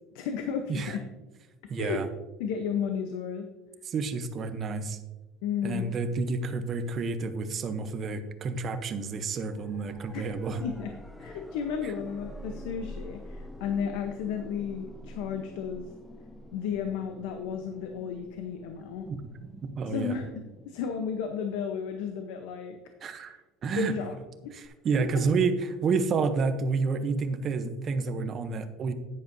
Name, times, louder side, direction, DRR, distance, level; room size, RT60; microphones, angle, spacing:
voice 1, 0.1-1.0 1.8-2.0 2.4-3.5 5.4-5.9 10.1-10.3 10.6-10.9 11.2-15.8 16.5-19.1 19.9-22.8 23.0-23.4 23.8-24.2 24.4-24.5, left 7 dB, 85° left, 6 dB, 0.8 m, -33 dB
voice 2, 1.7-2.1 3.9-5.0 5.6-10.6 11.8-11.9 19.1-19.2 19.5-20.1 23.0-23.4 23.6-23.9 24.5-25.5 25.8-28.9, right 4 dB, 30° right, 9 dB, 0.7 m, -29 dB
sound 1, 9.4-22.3 24.6-24.7, left 1 dB, 5° left, 0.4 m, -47 dB
10.0 x 9.6 x 2.6 m, 1.2 s
cardioid pair, 165°, 0 cm